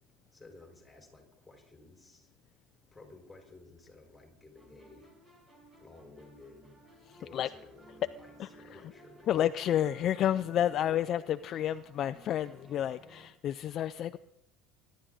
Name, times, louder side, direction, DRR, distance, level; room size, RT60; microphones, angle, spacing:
voice 1, 0.3-2.3 2.9-5.1 5.7-6.8 7.2-9.4 10.8-10.9, left 3 dB, 5° left, 2 dB, 4.4 m, -55 dB
sound 1, 4.5-13.3, right 1 dB, 20° right, 3.1 m, -57 dB
voice 2, 9.3-14.2, left 11 dB, 45° left, 12 dB, 0.4 m, -30 dB
22.5 x 11.5 x 3.9 m, 0.83 s
cardioid pair, 135°, 0 cm